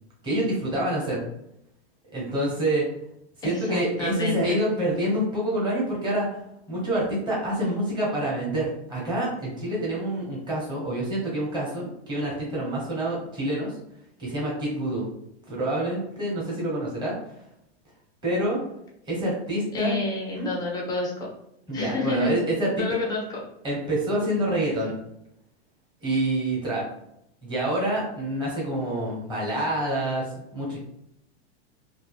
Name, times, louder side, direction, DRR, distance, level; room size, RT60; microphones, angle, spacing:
voice 1, 0.2-1.2 2.1-2.9 3.4-6.4 6.7-13.8 14.2-15.1 15.5-17.1 18.2-18.6 19.1-20.0 20.3-20.5 21.7-22.7 23.6-25.0 26.0-26.8 27.4-30.8, right 1 dB, 15° right, -5 dB, 1.0 m, -27 dB
voice 2, 3.4-4.6 19.7-21.1 21.7-22.5 22.7-23.4, left 2 dB, 10° left, -2 dB, 0.4 m, -28 dB
2.6 x 2.4 x 2.3 m, 0.79 s
supercardioid pair, 145°, 32 cm